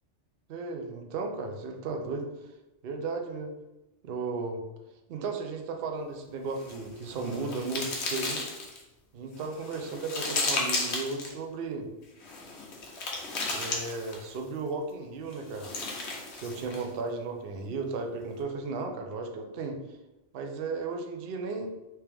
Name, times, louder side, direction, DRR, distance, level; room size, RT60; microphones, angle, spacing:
voice 1, 0.5-2.3 2.8-3.5 4.0-4.6 5.1-8.4 9.1-11.9 13.5-15.7 16.3-19.8 20.3-21.7, right 3 dB, 60° right, 3 dB, 0.7 m, -35 dB
sound 1, 6.5-8.8 9.4-11.3 12.2-14.4 15.3-16.9, left 3 dB, 70° left, 1.0 m, -34 dB
3.3 x 2.9 x 3.3 m, 0.98 s
omnidirectional pair, 1.2 m